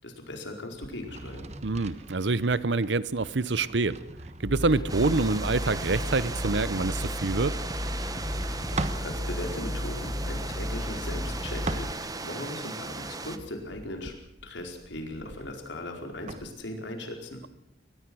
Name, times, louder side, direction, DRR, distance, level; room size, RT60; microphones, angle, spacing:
voice 1, 0.0-1.5 8.7-14.1 14.4-17.4, left 1 dB, 80° left, 3 dB, 4.7 m, -38 dB
sound 1, 0.7-9.1 9.9-12.4 12.8-16.5, right 2 dB, 40° right, 1.2 m, -41 dB
voice 2, 1.6-4.0 4.4-7.6, right 3 dB, 75° right, 17 dB, 0.9 m, -26 dB
sound 2, 4.4-11.9, left 1 dB, 20° left, 0.8 m, -34 dB
sound 3, 4.9-13.4, right 3 dB, 20° right, 1.2 m, -37 dB
23.5 x 19.0 x 6.3 m, 0.86 s
head